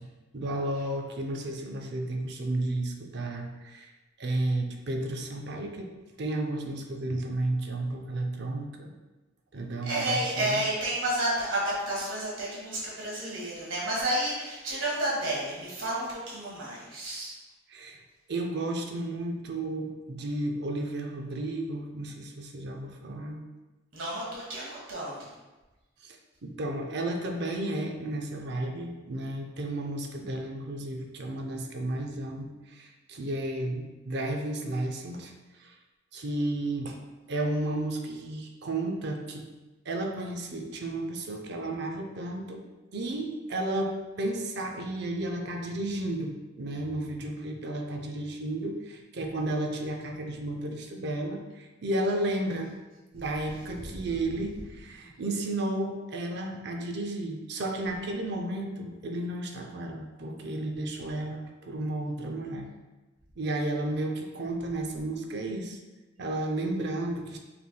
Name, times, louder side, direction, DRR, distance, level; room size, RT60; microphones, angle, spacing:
voice 1, 0.3-3.9 4.2-5.9 6.2-8.9 9.5-10.6 17.7-18.0 18.3-23.4 26.0-26.2 26.4-35.3 35.6-35.7 36.1-37.0 37.3-39.4 39.9-42.6 42.9-52.7 53.1-62.7 63.4-65.8 66.2-67.4, right 1 dB, 60° right, 3 dB, 0.5 m, -33 dB
voice 2, 9.8-17.3 23.9-25.3 53.8-53.9, right 1 dB, 90° right, -5 dB, 1.4 m, -31 dB
5.7 x 3.3 x 2.2 m, 1.1 s
head